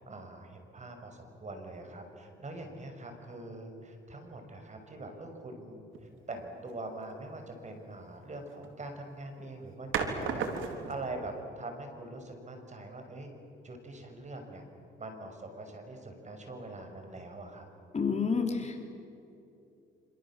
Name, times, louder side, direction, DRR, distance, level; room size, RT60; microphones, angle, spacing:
voice 1, 0.0-13.3 13.6-14.6 15.0-17.7, right 2 dB, 35° right, 5 dB, 6.1 m, -43 dB
sound 1, 5.9-6.2 8.4-8.8 9.9-11.1, right 6 dB, 85° right, 3.5 m, -34 dB
voice 2, 17.9-18.8, left 5 dB, 35° left, 4 dB, 3.5 m, -29 dB
27.5 x 27.0 x 7.5 m, 2.7 s
cardioid pair, 90°, 20 cm